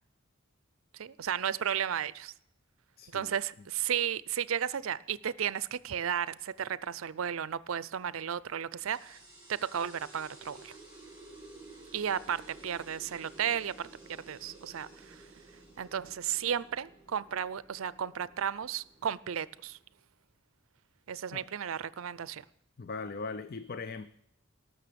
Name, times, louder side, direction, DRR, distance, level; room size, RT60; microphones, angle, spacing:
voice 1, 0.9-2.3 3.1-9.2 9.5-10.8 11.9-15.3 15.8-19.8 21.1-22.4, right 8 dB, 75° right, 0.5 m, -34 dB
voice 2, 3.0-3.3 21.3-21.5 22.8-24.1, left 4 dB, 45° left, 0.5 m, -39 dB
sound 1, 8.8-19.8, right 2 dB, 10° right, 5.3 m, -53 dB
18.5 x 6.5 x 6.8 m
head